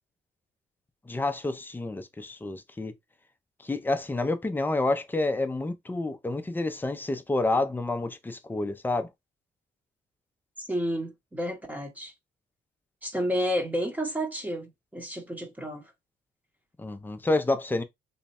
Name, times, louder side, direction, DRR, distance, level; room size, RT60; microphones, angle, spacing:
voice 1, 1.1-2.9 3.6-9.1 16.8-17.8, left 2 dB, 10° left, 0.4 m, -29 dB
voice 2, 10.6-12.1 13.0-15.8, equal, 10° right, 0.8 m, -31 dB
3.1 x 2.2 x 4.1 m
cardioid pair, 150°, 20 cm